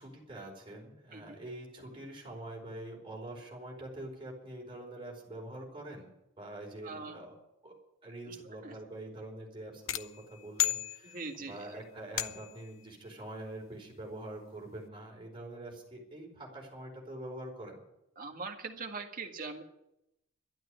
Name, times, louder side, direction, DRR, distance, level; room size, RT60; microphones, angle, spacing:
voice 1, 0.0-6.1 6.4-7.3 7.6-7.7 8.0-17.8, right 1 dB, 25° right, -1 dB, 4.8 m, -45 dB
voice 2, 6.8-7.2 8.3-8.4 8.6-8.7 11.0-11.8 18.2-19.6, right 4 dB, 45° right, 4 dB, 1.8 m, -42 dB
sound 1, 9.9-11.5 12.2-12.7, left 14 dB, 80° left, 0.7 m, -34 dB
12.5 x 10.5 x 9.9 m, 0.86 s
head